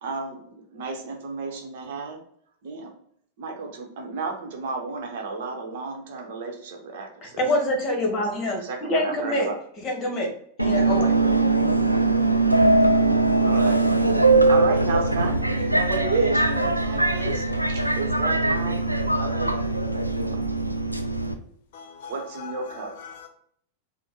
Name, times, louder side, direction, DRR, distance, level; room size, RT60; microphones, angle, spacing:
voice 1, 0.0-2.2 2.6-2.9 3.4-7.4 8.2-8.3 8.6-9.6 13.4-13.9 14.5-17.4 18.0-18.9 19.2-19.7 19.9-20.4 22.1-22.9, right 4 dB, 55° right, 0.8 m, -32 dB
voice 2, 7.2-9.5 9.8-10.3 10.6-11.2, left 1 dB, 30° left, 1.2 m, -26 dB
Subway metro underground, 10.6-21.3, right 2 dB, 90° right, 0.3 m, -21 dB
voice 3, 21.7-23.3, left 6 dB, 50° left, 0.5 m, -41 dB
4.4 x 2.1 x 4.5 m
figure-of-eight pair, 90°, 0 cm